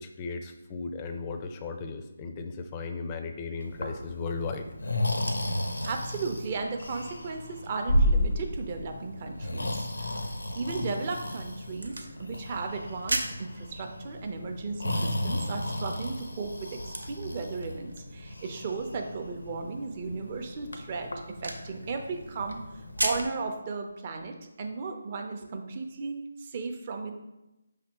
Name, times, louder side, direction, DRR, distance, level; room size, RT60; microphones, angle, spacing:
voice 1, 0.0-4.9, left 4 dB, 20° left, 6 dB, 0.4 m, -36 dB
Breathing, 3.6-23.3, left 1 dB, 85° left, 0.5 m, -33 dB
sound 1, 4.8-23.4, right 2 dB, 85° right, 0.7 m, -41 dB
voice 2, 5.8-10.2 10.5-21.1 21.4-22.6 23.0-27.1, right 4 dB, 35° right, 4 dB, 0.5 m, -35 dB
5.2 x 3.3 x 2.9 m, 0.97 s
figure-of-eight pair, 155°, 0 cm